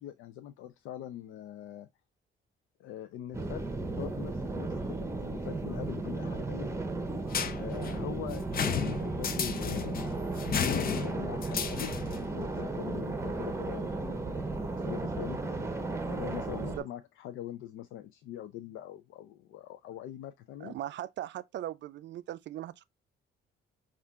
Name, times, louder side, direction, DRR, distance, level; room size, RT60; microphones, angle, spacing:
voice 1, 0.0-1.9 2.8-3.6 3.9-6.7 7.5-10.2 10.8-11.9 12.3-15.4 16.1-20.8, left 12 dB, 90° left, 0.4 m, -43 dB
sound 1, 3.3-16.8, right 3 dB, 15° right, 0.8 m, -35 dB
sound 2, 7.3-12.3, left 7 dB, 50° left, 0.6 m, -33 dB
voice 2, 20.6-22.8, right 13 dB, 65° right, 0.4 m, -39 dB
5.5 x 2.4 x 3.5 m
cardioid pair, 90°, 20 cm